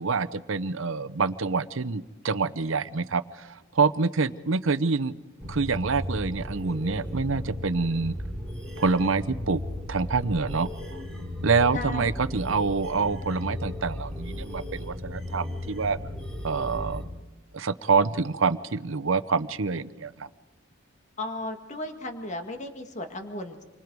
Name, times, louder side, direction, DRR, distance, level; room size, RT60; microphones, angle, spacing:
voice 1, 0.0-5.1 5.4-8.2 8.8-9.6 9.9-11.0 11.4-16.0 16.4-17.0 17.5-20.3, right 4 dB, 70° right, 15 dB, 0.8 m, -26 dB
sound 1, 5.4-17.0, left 1 dB, 5° left, 5.4 m, -35 dB
voice 2, 11.7-12.1 21.2-23.6, left 1 dB, 35° left, 5 dB, 1.9 m, -35 dB
28.5 x 25.0 x 4.7 m, 1.2 s
head